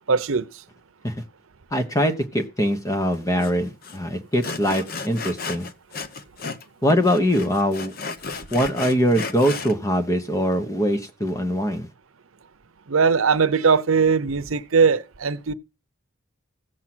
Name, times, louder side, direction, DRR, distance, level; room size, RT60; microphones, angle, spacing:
voice 1, 0.1-0.5 12.9-15.5, right 5 dB, 85° right, 0.8 m, -20 dB
voice 2, 1.7-5.7 6.8-7.9 8.5-11.9, equal, 15° left, 1.1 m, -22 dB
Sawing, 3.4-3.5 3.8-4.0 4.4-6.6 6.9-9.7, left 4 dB, 45° left, 0.8 m, -33 dB
15.0 x 7.4 x 6.1 m
head